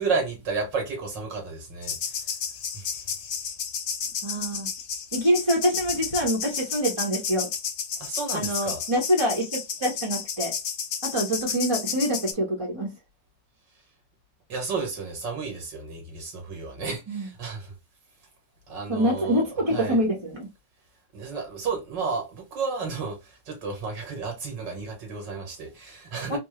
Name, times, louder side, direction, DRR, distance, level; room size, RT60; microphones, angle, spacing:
voice 1, 0.0-2.2 2.7-3.0 8.0-8.8 14.5-17.7 18.7-19.4 19.7-20.0 21.1-26.4, right 4 dB, 80° right, 2.4 m, -32 dB
sound 1, 1.8-12.3, left 7 dB, 75° left, 1.3 m, -32 dB
voice 2, 4.2-4.7 5.1-7.5 8.3-9.5 9.8-10.5 11.0-12.9 17.1-17.3 18.9-20.5 26.3-26.4, equal, 20° right, 1.0 m, -25 dB
4.4 x 2.3 x 3.1 m
omnidirectional pair, 1.9 m